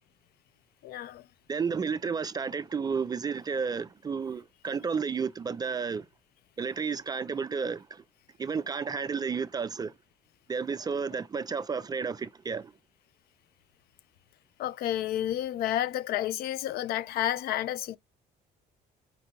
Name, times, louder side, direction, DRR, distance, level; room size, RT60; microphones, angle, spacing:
voice 1, 0.8-1.3 14.6-18.0, left 12 dB, 65° left, 0.4 m, -30 dB
voice 2, 1.5-6.1 6.6-8.0 8.4-9.9 10.5-12.7, right 5 dB, 25° right, 0.3 m, -32 dB
4.4 x 3.9 x 2.8 m
cardioid pair, 110°, 17 cm